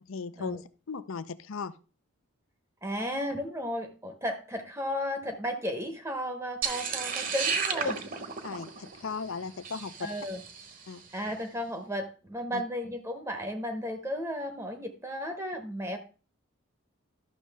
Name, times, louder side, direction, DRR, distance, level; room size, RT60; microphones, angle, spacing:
voice 1, 0.0-1.8 8.4-10.1 10.9-11.0 12.5-12.6, left 5 dB, 70° left, 14 dB, 0.6 m, -37 dB
voice 2, 2.8-8.0 10.0-10.4 11.1-16.0, equal, 15° right, 6 dB, 0.8 m, -34 dB
sound 1, 6.6-10.9, right 5 dB, 40° right, 0.9 m, -33 dB
12.5 x 6.4 x 3.4 m, 0.35 s
head